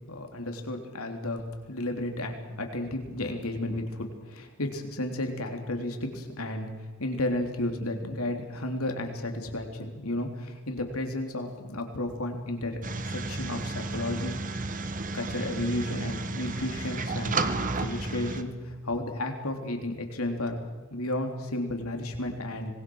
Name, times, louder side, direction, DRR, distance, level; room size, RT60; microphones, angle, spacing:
voice 1, 0.1-1.4 1.7-6.7 7.0-12.8 13.1-14.4 15.1-17.4 17.8-20.6 20.9-22.7, left 1 dB, 90° left, 4 dB, 3.4 m, -32 dB
sound 1, 12.8-18.4, right 3 dB, 40° right, 1.4 m, -32 dB
25.5 x 20.5 x 6.4 m, 1.3 s
head